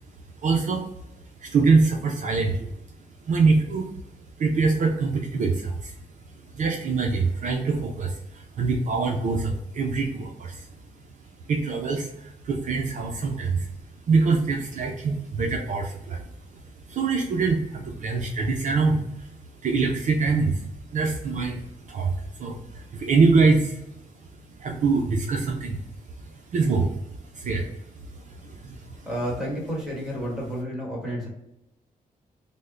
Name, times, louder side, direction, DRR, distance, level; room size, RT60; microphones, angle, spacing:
voice 1, 0.4-0.9 1.4-2.7 3.2-3.9 4.4-6.0 6.5-10.7 11.4-13.7 14.1-16.2 16.5-19.3 19.6-25.8 26.2-29.0, right 4 dB, 55° right, 2 dB, 0.5 m, -24 dB
voice 2, 29.0-31.3, equal, 5° right, -4 dB, 1.4 m, -30 dB
3.4 x 2.1 x 3.7 m, 0.84 s
cardioid pair, 110°, 15 cm